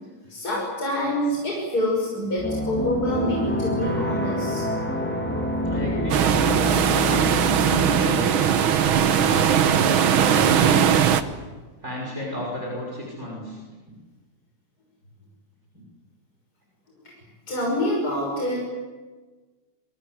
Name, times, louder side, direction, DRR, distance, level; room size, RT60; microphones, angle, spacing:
voice 1, 0.3-4.6 17.5-18.6, left 1 dB, 45° left, -2 dB, 6.8 m, -26 dB
sound 1, 2.4-8.3, left 1 dB, 5° left, 2.7 m, -27 dB
voice 2, 5.6-8.5 9.0-11.0 11.8-13.6, equal, 35° right, -2 dB, 6.3 m, -32 dB
sound 2, 6.1-11.2, right 8 dB, 85° right, 2.0 m, -19 dB
27.5 x 24.5 x 8.1 m, 1.3 s
omnidirectional pair, 2.2 m